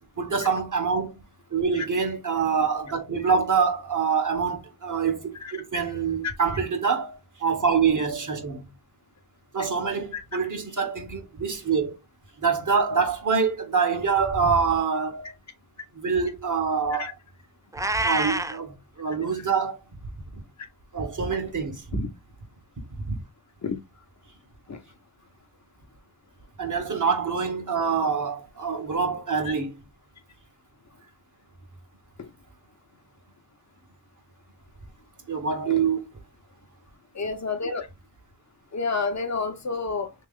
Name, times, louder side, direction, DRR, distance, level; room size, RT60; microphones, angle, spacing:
voice 1, 0.2-1.1 1.5-8.7 9.5-11.9 12.4-15.3 15.9-17.1 18.0-19.8 20.3-20.4 20.9-22.0 22.9-23.2 26.6-29.7 35.3-36.0, right 5 dB, 45° right, 1.4 m, -25 dB
Meow, 17.7-18.6, right 2 dB, 10° right, 0.3 m, -26 dB
voice 2, 37.1-37.9 38.7-40.1, left 4 dB, 40° left, 0.9 m, -30 dB
3.2 x 2.9 x 3.8 m
cardioid pair, 55°, 41 cm